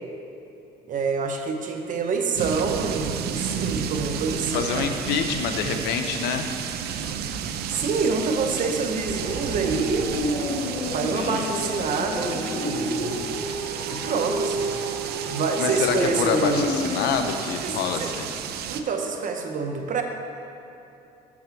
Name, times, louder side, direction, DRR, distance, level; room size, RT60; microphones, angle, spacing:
voice 1, 0.9-4.9 7.6-10.1 10.9-13.4 13.9-14.8 15.3-16.6 17.6-18.1 18.7-20.0, right 5 dB, 50° right, 4 dB, 0.9 m, -27 dB
sound 1, 2.3-18.8, right 7 dB, 70° right, 0.5 m, -32 dB
voice 2, 4.5-6.5 11.1-11.5 15.6-18.3, left 6 dB, 80° left, 6 dB, 0.7 m, -26 dB
sound 2, 9.1-17.1, equal, 45° left, 1.8 m, -30 dB
6.9 x 6.2 x 5.9 m, 2.9 s
cardioid pair, 110°, 17 cm